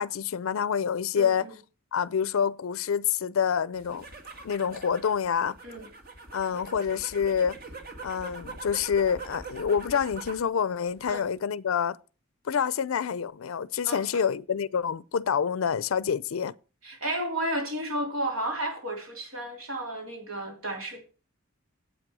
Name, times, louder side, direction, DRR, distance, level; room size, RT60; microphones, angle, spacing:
voice 1, 0.0-1.5 1.9-4.1 4.4-5.6 6.3-7.6 8.0-12.0 12.5-16.5, left 7 dB, 70° left, 0.4 m, -27 dB
voice 2, 1.2-1.5 5.6-5.9 11.1-11.2 13.8-14.3 16.8-21.0, right 1 dB, 70° right, 3.4 m, -32 dB
sound 1, 3.7-10.5 10.8-11.4, right 3 dB, 45° right, 1.8 m, -43 dB
9.0 x 8.2 x 6.1 m
head